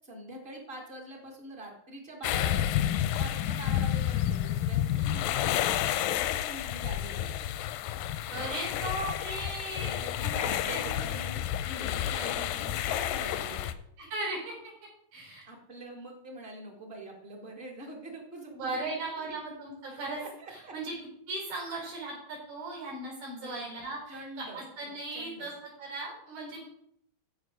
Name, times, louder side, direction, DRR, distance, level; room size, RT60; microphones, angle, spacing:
voice 1, 0.0-7.4 9.8-13.6 15.5-19.4 19.9-20.7 23.4-23.7 24.1-25.5, right 1 dB, 70° right, -2 dB, 0.5 m, -44 dB
sound 1, 2.2-13.7, left 11 dB, 85° left, 2.2 m, -30 dB
voice 2, 8.3-10.0 10.2-10.9 14.0-14.5 15.1-15.4 18.5-20.2 20.5-20.9 21.3-25.5 25.8-26.8, right 2 dB, 90° right, -2 dB, 6.4 m, -37 dB
14.5 x 5.0 x 4.9 m, 0.71 s
omnidirectional pair, 4.0 m